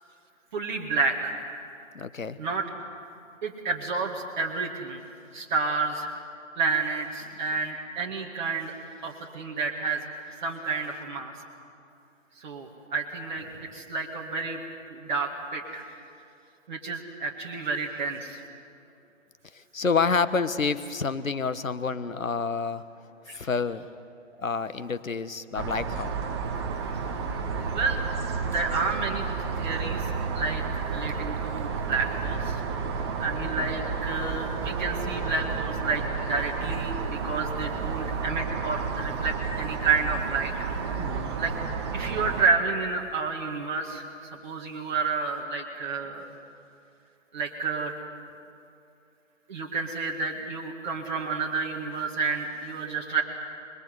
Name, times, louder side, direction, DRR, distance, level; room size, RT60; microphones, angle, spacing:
voice 1, 0.5-1.3 2.4-2.6 3.4-5.0 5.3-6.1 6.6-8.7 9.0-10.0 10.4-11.3 12.4-13.4 13.7-14.6 14.9-15.8 16.7-18.4 23.3-23.5 27.7-28.0 28.4-29.3 29.6-32.6 33.2-40.5 41.4-41.5 41.9-46.3 47.3-47.9 49.5-53.2, right 4 dB, 35° right, -1 dB, 2.2 m, -30 dB
voice 2, 1.9-2.4 19.5-22.8 23.3-23.9 24.4-26.2 33.4-33.7 41.0-41.4, left 5 dB, 85° left, 12 dB, 1.4 m, -29 dB
sound 1, 25.6-42.4, right 5 dB, 20° right, 1.1 m, -31 dB
29.0 x 21.0 x 7.9 m, 2.5 s
figure-of-eight pair, 150°, 39 cm